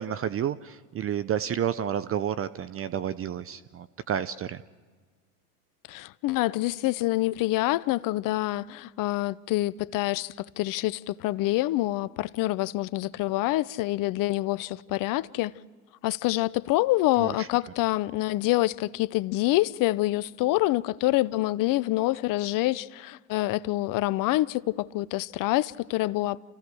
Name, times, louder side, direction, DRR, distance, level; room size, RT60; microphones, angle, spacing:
voice 1, 0.0-4.6 17.2-17.5, right 9 dB, 30° right, 0.6 m, -30 dB
voice 2, 5.9-15.5 16.0-26.4, left 18 dB, 45° left, 0.7 m, -26 dB
28.5 x 15.5 x 6.3 m
hypercardioid pair, 90°, 45 cm